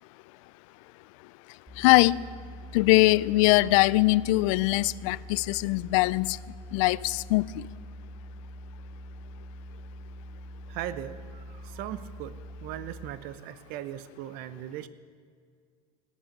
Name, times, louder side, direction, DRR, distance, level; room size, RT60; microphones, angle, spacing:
sound 1, 1.7-13.1, equal, 10° right, 3.5 m, -44 dB
voice 1, 1.8-2.2 2.7-6.4 6.7-7.6, left 20 dB, 55° left, 0.4 m, -22 dB
voice 2, 10.7-12.3 12.6-14.9, right 12 dB, 50° right, 0.7 m, -38 dB
17.5 x 6.1 x 8.5 m
hypercardioid pair, 85°, 20 cm